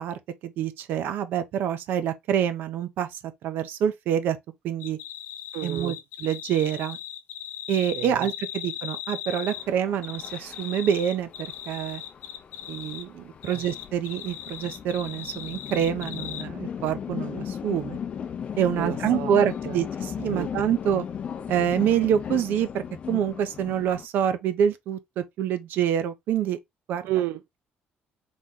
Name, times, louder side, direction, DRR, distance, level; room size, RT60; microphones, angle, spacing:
voice 1, 0.0-4.4 4.6-5.0 5.6-7.0 7.7-12.0 12.7-18.0 18.6-21.0 21.5-26.6 26.9-27.1, right 9 dB, 60° right, 0.8 m, -26 dB
sound 1, 4.8-9.7 10.0-13.0 13.4-16.4, left 11 dB, 80° left, 0.6 m, -38 dB
voice 2, 5.5-6.0 7.9-8.3 13.5-13.6 18.7-19.3 19.7-19.8 20.3-20.5 27.1-27.6, right 14 dB, 85° right, 0.3 m, -31 dB
sound 2, 9.5-24.1, left 8 dB, 35° left, 0.5 m, -36 dB
4.1 x 3.1 x 3.7 m
cardioid pair, 170°, 4 cm